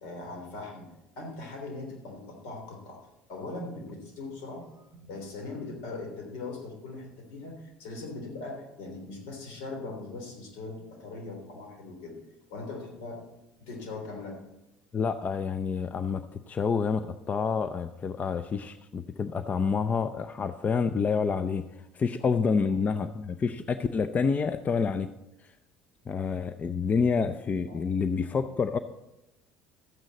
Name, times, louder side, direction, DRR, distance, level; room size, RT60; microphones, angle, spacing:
voice 1, 0.0-3.0 3.3-12.2 12.5-13.2 13.6-14.4 22.2-22.3 27.7-27.8, left 3 dB, 75° left, 3 dB, 3.4 m, -40 dB
voice 2, 14.9-25.1 26.1-28.8, left 5 dB, 35° left, 11 dB, 0.6 m, -28 dB
13.0 x 9.0 x 4.1 m, 0.90 s
hypercardioid pair, 75°, 5 cm